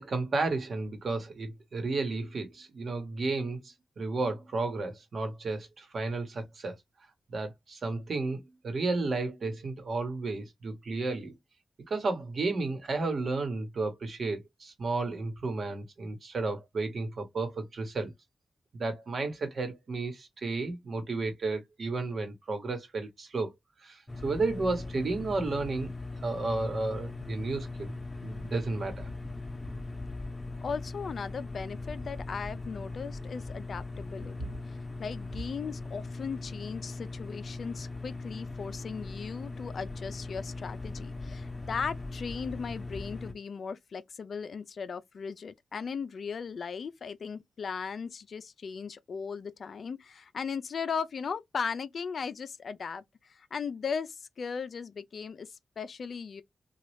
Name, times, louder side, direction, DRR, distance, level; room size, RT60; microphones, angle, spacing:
voice 1, 0.0-6.7 7.3-11.3 11.9-18.1 18.7-23.5 23.8-25.9 26.2-27.9 28.2-29.1, right 3 dB, 65° right, 1.1 m, -32 dB
sound 1, 24.1-43.3, left 3 dB, 25° left, 0.7 m, -40 dB
voice 2, 30.6-34.6 35.0-56.4, left 6 dB, 70° left, 0.4 m, -37 dB
3.0 x 2.3 x 3.1 m
supercardioid pair, 40°, 0 cm